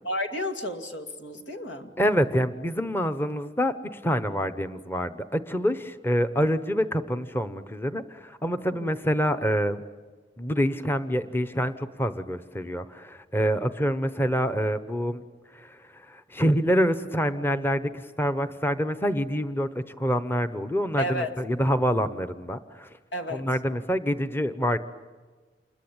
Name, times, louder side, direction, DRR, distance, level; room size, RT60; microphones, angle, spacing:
voice 1, 0.0-1.9 8.8-9.0 21.0-21.3 23.1-23.5, equal, 90° left, 7 dB, 2.4 m, -32 dB
voice 2, 2.0-9.8 10.4-15.2 15.6-15.8 16.1-17.9 18.2-22.9 23.3-24.8, equal, 15° left, 11 dB, 0.9 m, -26 dB
28.0 x 22.0 x 8.8 m, 1.4 s
head